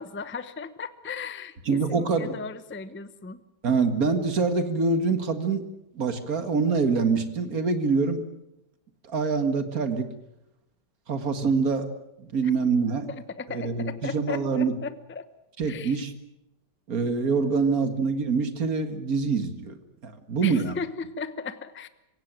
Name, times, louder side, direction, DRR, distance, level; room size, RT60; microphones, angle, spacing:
voice 1, 0.0-3.4 13.1-15.3 15.7-16.0 20.4-21.9, left 4 dB, 10° left, 13 dB, 0.5 m, -36 dB
voice 2, 1.7-2.3 3.6-5.7 6.0-8.2 9.0-10.1 11.1-11.9 12.2-13.1 13.5-14.7 15.6-16.1 16.9-19.8 20.0-20.7, right 4 dB, 50° right, 9 dB, 2.3 m, -25 dB
26.0 x 16.5 x 8.9 m, 0.87 s
omnidirectional pair, 2.0 m